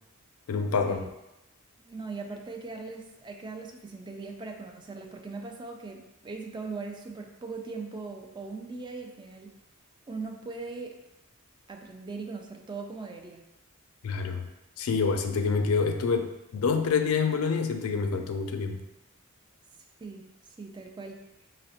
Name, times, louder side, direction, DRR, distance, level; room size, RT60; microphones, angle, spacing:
voice 1, 0.5-1.0 14.0-14.5 14.8-18.8, left 5 dB, 75° left, 6 dB, 0.4 m, -27 dB
voice 2, 1.8-9.6 10.1-10.9 11.7-13.4 20.0-20.2 20.6-21.2, right 4 dB, 20° right, 3 dB, 0.3 m, -40 dB
5.1 x 2.0 x 2.8 m, 0.93 s
head